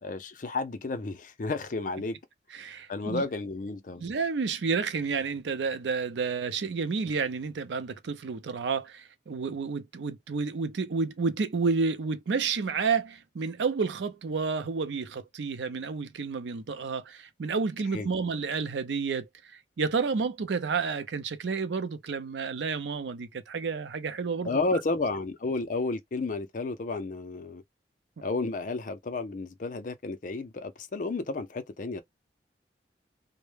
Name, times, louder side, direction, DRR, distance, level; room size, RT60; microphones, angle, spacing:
voice 1, 0.0-2.2 2.9-4.0 17.9-18.1 24.4-27.6 28.2-32.0, left 3 dB, 45° left, 0.5 m, -32 dB
voice 2, 2.5-3.2 4.0-24.5, right 5 dB, 85° right, 0.5 m, -30 dB
2.1 x 2.0 x 3.1 m
head